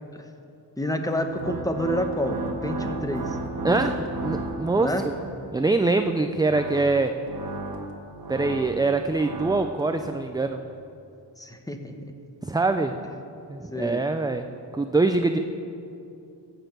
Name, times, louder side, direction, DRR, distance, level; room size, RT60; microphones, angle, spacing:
voice 1, 0.8-3.4 4.7-5.1 11.4-11.9 13.0-13.1 13.7-14.0, left 1 dB, 10° left, 5 dB, 1.0 m, -29 dB
sound 1, 1.2-5.2 6.2-10.2, right 2 dB, 50° right, 1.3 m, -34 dB
voice 2, 3.6-5.2 5.5-7.2 8.3-10.6 12.4-13.0 13.5-14.5 14.7-15.4, right 3 dB, 10° right, 7 dB, 0.3 m, -24 dB
14.0 x 6.8 x 8.0 m, 2.7 s
wide cardioid pair, 105°, 45 cm